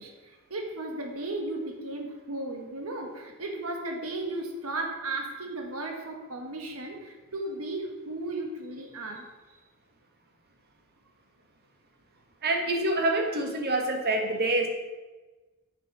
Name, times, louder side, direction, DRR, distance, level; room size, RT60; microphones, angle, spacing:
voice 1, 0.0-9.3, right 2 dB, 75° right, 3 dB, 1.5 m, -35 dB
voice 2, 12.4-14.7, right 2 dB, 45° right, 3 dB, 1.6 m, -26 dB
8.5 x 7.3 x 6.1 m, 1.2 s
head